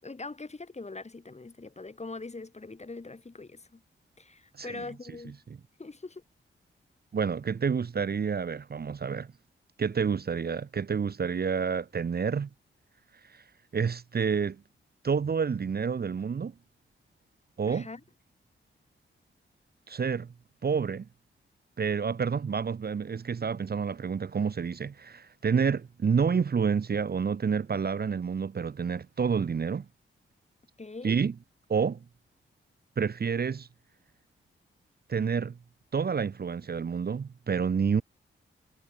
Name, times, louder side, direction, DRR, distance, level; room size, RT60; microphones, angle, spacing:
voice 1, 0.0-3.8 4.2-5.4 5.8-6.2 17.7-18.0 30.8-31.2, left 3 dB, 30° left, 7.9 m, -42 dB
voice 2, 7.1-9.3 9.8-12.5 13.2-13.4 13.7-14.6 15.0-16.5 17.6-17.9 19.9-20.3 20.6-21.1 21.8-29.8 31.0-31.3 31.7-32.0 33.0-33.7 35.1-35.6 35.9-38.0, right 6 dB, 45° right, 1.1 m, -29 dB
cardioid pair, 80°, 21 cm